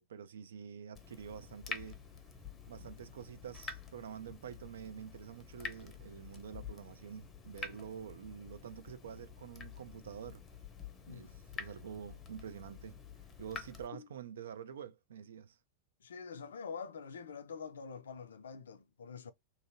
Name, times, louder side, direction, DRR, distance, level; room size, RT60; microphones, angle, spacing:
voice 1, 0.0-2.0 2.7-10.4 11.0-11.3 11.6-13.0 13.4-15.6, right 8 dB, 65° right, 0.3 m, -47 dB
Water tap faucet / Drip, 0.9-13.9, left 5 dB, 25° left, 0.6 m, -48 dB
voice 2, 11.1-11.4 13.9-14.1 16.0-19.3, left 5 dB, 65° left, 0.4 m, -46 dB
2.8 x 2.6 x 2.7 m
figure-of-eight pair, 90°, 0 cm